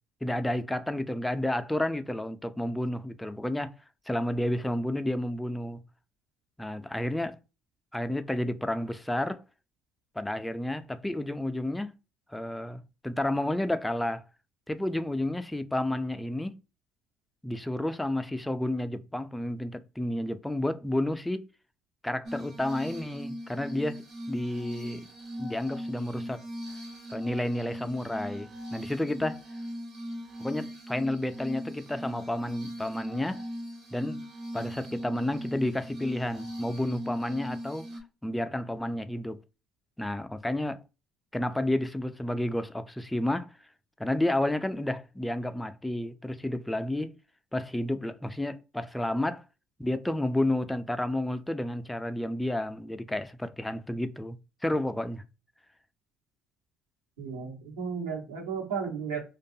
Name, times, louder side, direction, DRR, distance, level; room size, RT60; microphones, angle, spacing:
voice 1, 0.2-3.7 4.1-5.8 6.6-7.4 7.9-9.4 10.2-11.9 12.3-14.2 14.7-16.5 17.4-21.5 22.0-25.1 25.4-26.4 27.1-29.4 30.4-33.4 33.9-34.2 34.5-37.9 38.2-39.4 40.0-40.8 41.3-43.5 44.0-47.2 47.5-49.4 49.8-54.4 54.6-55.2, left 1 dB, 10° left, 0.4 m, -31 dB
Glass, 22.3-38.0, equal, 50° right, 0.7 m, -39 dB
voice 2, 57.2-59.2, right 6 dB, 90° right, 1.0 m, -34 dB
2.5 x 2.3 x 2.6 m
hypercardioid pair, 65°, 0 cm